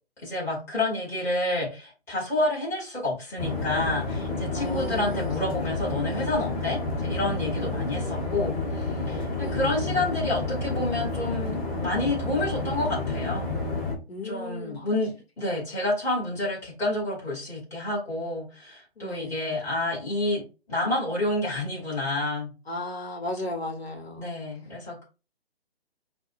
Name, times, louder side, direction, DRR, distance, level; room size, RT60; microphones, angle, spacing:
voice 1, 0.2-13.5 14.2-22.5 24.2-25.0, left 2 dB, 10° left, 2.3 m, -29 dB
sound 1, 3.4-14.0, left 3 dB, 35° left, 1.9 m, -30 dB
voice 2, 4.5-5.4 7.6-8.3 9.4-9.8 14.1-14.9 19.0-19.5 22.7-24.3 24.6-24.7, left 2 dB, 75° left, 1.2 m, -36 dB
5.4 x 2.7 x 2.5 m
figure-of-eight pair, 145°, 32 cm